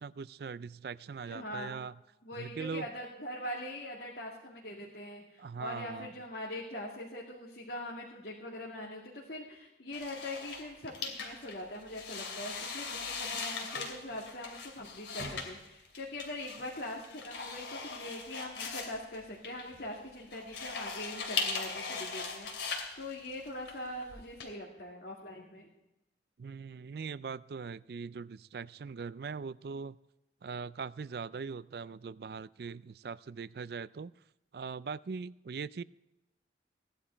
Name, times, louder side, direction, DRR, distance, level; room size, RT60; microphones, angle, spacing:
voice 1, 0.0-1.9 2.3-2.9 5.4-6.1 26.4-30.0 30.4-34.1 34.5-35.8, right 5 dB, 55° right, 18 dB, 0.4 m, -41 dB
voice 2, 1.3-1.8 2.2-25.7, left 1 dB, 60° left, -3 dB, 2.3 m, -42 dB
sound 1, 9.9-24.5, left 4 dB, 80° left, 2.8 m, -40 dB
17.0 x 11.0 x 4.5 m, 0.96 s
head